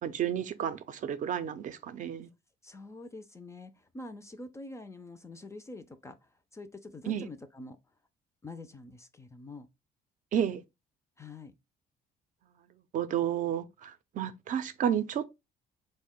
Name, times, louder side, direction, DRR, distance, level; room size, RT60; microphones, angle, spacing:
voice 1, 0.0-2.3 7.1-7.3 10.3-10.6 12.9-15.2, right 9 dB, 50° right, 0.5 m, -31 dB
voice 2, 2.6-7.8 8.4-9.7 11.2-11.5, left 2 dB, 15° left, 0.3 m, -46 dB
4.0 x 2.1 x 3.5 m
cardioid pair, 110°, 17 cm